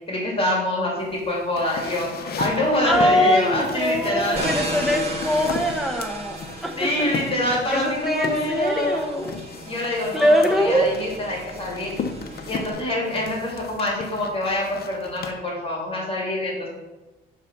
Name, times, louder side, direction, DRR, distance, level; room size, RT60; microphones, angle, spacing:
voice 1, 0.1-4.5 4.8-5.0 6.8-9.0 9.6-11.9 12.4-16.7, left 1 dB, 30° left, -3 dB, 2.1 m, -25 dB
sound 1, 1.0-15.3, left 5 dB, 50° left, 0.7 m, -36 dB
voice 2, 2.8-7.1 7.7-9.4 10.1-11.0, equal, ahead, 4 dB, 0.9 m, -22 dB
sound 2, 4.3-12.7, right 1 dB, 30° right, 1.6 m, -35 dB
6.6 x 3.3 x 5.8 m, 1.1 s
cardioid pair, 90°, 20 cm